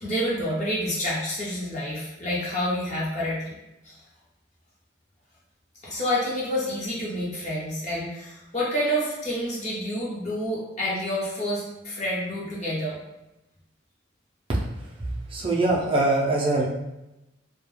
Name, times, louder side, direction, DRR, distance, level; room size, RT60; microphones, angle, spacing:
voice 1, 0.0-3.5 3.8-4.0 5.8-13.0, equal, 35° left, -6 dB, 0.7 m, -28 dB
voice 2, 15.0-16.6, right 2 dB, 30° right, -3 dB, 0.4 m, -23 dB
2.2 x 2.2 x 3.1 m, 0.92 s
head